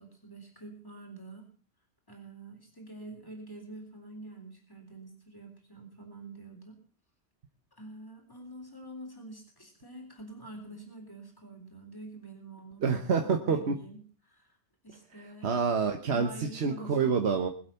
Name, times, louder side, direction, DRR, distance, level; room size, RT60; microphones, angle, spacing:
voice 1, 0.0-1.5 2.1-6.8 7.8-13.1 13.4-14.6 14.8-15.6 16.1-17.3, right 2 dB, 20° left, 1 dB, 3.7 m, -47 dB
voice 2, 12.8-13.8 15.4-17.5, right 5 dB, 75° right, 5 dB, 1.4 m, -27 dB
21.5 x 8.0 x 5.7 m, 0.42 s
omnidirectional pair, 1.1 m